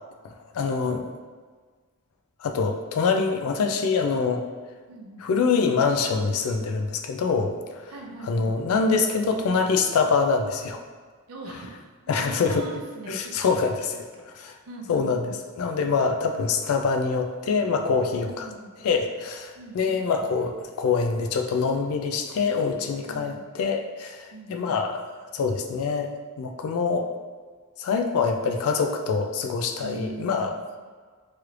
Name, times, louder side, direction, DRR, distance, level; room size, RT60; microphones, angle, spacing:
voice 1, 0.2-1.1 2.4-4.5 5.2-7.9 8.2-10.8 12.1-12.7 13.1-13.9 14.4-14.5 14.9-15.2 15.6-18.5 18.8-25.0 25.3-27.1 27.8-30.5, left 5 dB, 70° left, 5 dB, 0.3 m, -25 dB
voice 2, 4.9-5.2 7.9-8.6 11.3-11.8 12.1-13.9 14.3-15.3 18.2-18.7 19.5-20.3 23.1-23.4 24.3-24.8 29.8-30.5, right 2 dB, 80° right, -1 dB, 0.6 m, -41 dB
3.1 x 3.1 x 2.4 m, 1.5 s
head